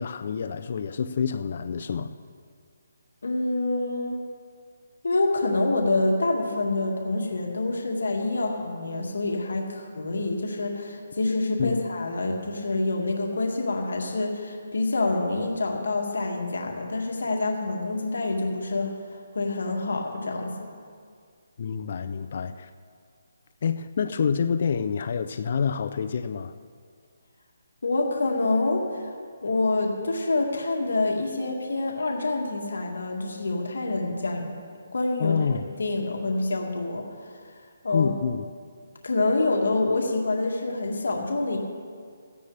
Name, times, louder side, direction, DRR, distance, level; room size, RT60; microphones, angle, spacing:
voice 1, 0.0-2.1 11.6-11.8 21.6-22.7 23.6-26.5 35.2-35.6 37.9-38.4, left 6 dB, 45° left, 11 dB, 0.5 m, -27 dB
voice 2, 3.2-4.2 5.0-19.0 19.3-20.7 27.8-29.1 29.4-34.6 34.9-35.4 35.8-37.0 37.8-38.2 39.0-41.6, left 2 dB, 85° left, 0 dB, 2.1 m, -26 dB
16.5 x 14.5 x 3.4 m, 2.1 s
hypercardioid pair, 165°, 0 cm